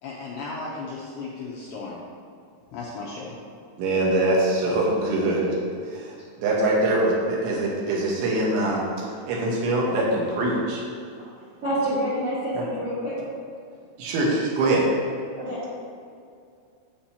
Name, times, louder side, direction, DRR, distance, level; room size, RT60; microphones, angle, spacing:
voice 1, 0.0-2.0 2.7-3.4, left 3 dB, 80° left, -5 dB, 2.3 m, -35 dB
voice 2, 3.8-6.1 6.4-10.8 12.5-12.6 14.0-14.9, right 2 dB, 80° right, -4 dB, 3.5 m, -23 dB
voice 3, 11.6-13.2 15.4-15.7, equal, 55° right, -10 dB, 1.7 m, -27 dB
8.8 x 7.5 x 2.9 m, 2.4 s
omnidirectional pair, 5.5 m